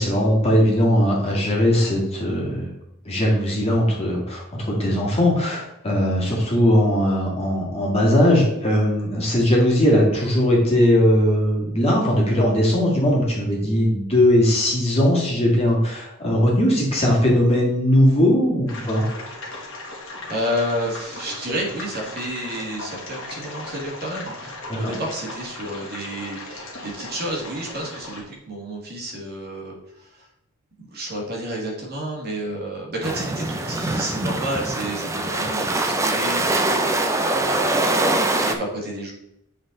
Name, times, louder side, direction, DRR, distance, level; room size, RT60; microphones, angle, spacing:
voice 1, 0.0-2.7 3.0-19.0 24.8-24.9, equal, 30° left, -3 dB, 2.0 m, -19 dB
sound 1, 18.7-28.2, left 2 dB, 65° left, 1.8 m, -37 dB
voice 2, 20.3-30.3 30.8-39.1, right 1 dB, 45° right, -2 dB, 1.8 m, -31 dB
sound 2, 33.0-38.6, right 2 dB, 15° right, 0.5 m, -23 dB
7.8 x 4.0 x 3.8 m, 0.81 s
head